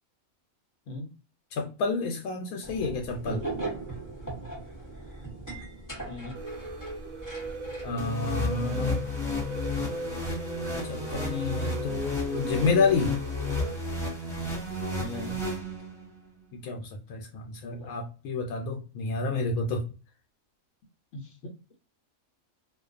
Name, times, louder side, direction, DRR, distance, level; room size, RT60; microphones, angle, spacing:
voice 1, 1.5-3.4 7.8-9.0 10.7-13.1 16.5-19.8, left 4 dB, 90° left, 2 dB, 1.0 m, -29 dB
sound 1, 2.6-8.0, right 2 dB, 20° left, 0.6 m, -38 dB
voice 2, 6.0-6.4 15.0-15.4 17.6-18.0 21.1-21.8, left 2 dB, 65° left, 3 dB, 0.8 m, -41 dB
sound 2, 6.3-13.8, right 2 dB, 70° right, 0.9 m, -38 dB
sound 3, 8.0-16.1, left 2 dB, ahead, 1.2 m, -32 dB
2.4 x 2.2 x 2.3 m, 0.33 s
omnidirectional pair, 1.5 m